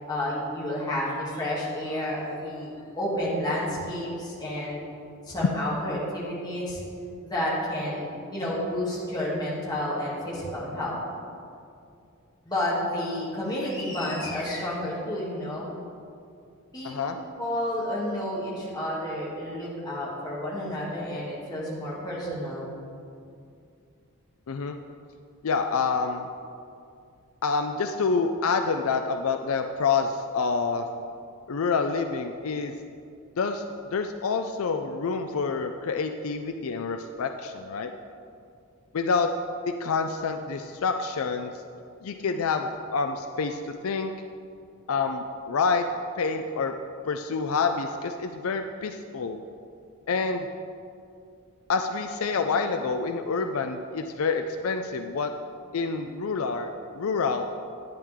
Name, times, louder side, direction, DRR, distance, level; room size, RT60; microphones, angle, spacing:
voice 1, 0.1-4.8 5.3-6.8 7.2-8.1 8.3-11.0 12.4-15.7 16.7-16.9 17.4-22.7, left 1 dB, 20° left, -7 dB, 2.5 m, -30 dB
voice 2, 16.8-17.2 24.5-24.8 25.4-26.3 27.4-30.9 31.5-32.7 33.4-33.6 33.9-37.9 38.9-39.3 39.7-41.5 42.0-44.1 44.9-45.8 46.2-46.7 47.1-49.4 50.1-50.5 51.7-55.3 55.7-56.7 56.9-57.4, left 4 dB, 75° left, 6 dB, 0.5 m, -27 dB
10.5 x 9.9 x 3.6 m, 2.4 s
head